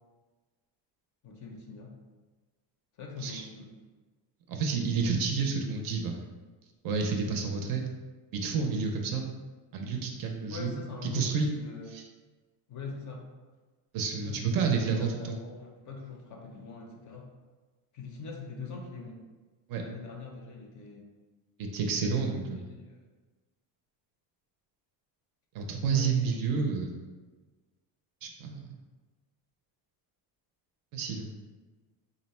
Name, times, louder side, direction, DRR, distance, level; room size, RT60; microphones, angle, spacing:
voice 1, 1.2-1.9 3.0-3.7 10.5-11.9 12.7-13.3 14.3-17.3 17.9-19.2 19.8-21.1 22.0-23.0 25.9-26.1, left 4 dB, 40° left, 1 dB, 0.5 m, -43 dB
voice 2, 4.5-6.2 6.8-7.8 8.3-9.3 9.7-10.7 11.1-11.5 11.9-12.0 13.9-15.4 19.7-19.8 21.6-22.6 25.5-27.0 28.2-28.7 30.9-31.3, right 5 dB, 50° right, 2 dB, 0.5 m, -30 dB
3.8 x 2.0 x 4.2 m, 1.3 s
cardioid pair, 175°, 47 cm